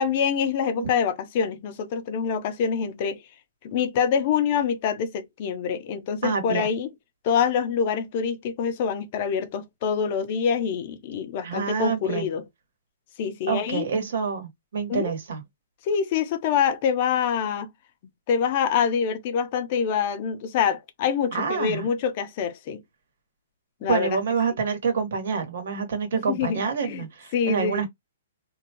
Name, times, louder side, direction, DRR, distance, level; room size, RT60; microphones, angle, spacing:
voice 1, 0.0-3.2 3.6-6.9 7.2-12.4 13.2-13.8 14.9-15.1 15.8-17.7 18.3-22.8 23.8-24.2 26.1-27.0 27.3-27.8, left 7 dB, 35° left, 0.6 m, -25 dB
voice 2, 6.2-6.7 11.4-12.3 13.5-15.4 21.3-21.9 23.9-27.9, right 6 dB, 60° right, 1.3 m, -27 dB
2.6 x 2.3 x 2.8 m
hypercardioid pair, 170°, 0 cm